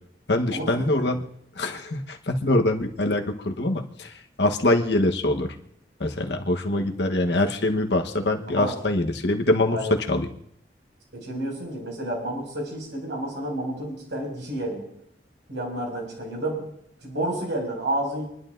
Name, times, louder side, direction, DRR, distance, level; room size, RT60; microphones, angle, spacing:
voice 1, 0.3-1.2 1.5-5.5 6.0-10.3, left 1 dB, 75° left, 4 dB, 1.2 m, -24 dB
voice 2, 11.1-14.9 15.5-16.7 17.0-18.2, right 1 dB, 80° right, -1 dB, 5.9 m, -30 dB
27.0 x 11.5 x 2.6 m, 0.70 s
head